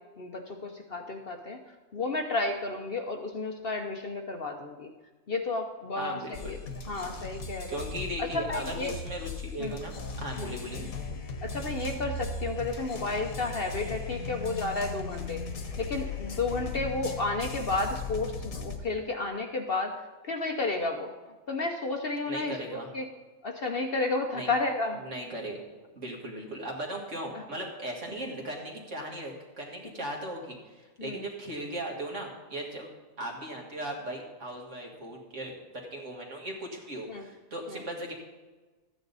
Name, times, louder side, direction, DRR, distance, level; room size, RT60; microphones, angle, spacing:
voice 1, 0.2-1.6 1.9-4.9 5.3-6.6 6.9-7.8 8.2-8.9 9.6-9.8 10.4-10.5 11.4-15.4 15.8-21.1 21.5-23.0 23.4-25.0 27.3-27.4 31.0-31.3 37.1-37.2 37.7-37.8, left 3 dB, 50° left, 4 dB, 0.9 m, -32 dB
voice 2, 5.9-6.5 7.7-10.9 22.3-22.9 24.3-24.5 25.0-25.6 26.0-32.9 33.2-38.1, right 1 dB, 55° right, 0 dB, 2.2 m, -38 dB
sound 1, 6.3-18.8, left 3 dB, 70° left, 1.6 m, -37 dB
13.5 x 9.4 x 4.1 m, 1.3 s
omnidirectional pair, 1.5 m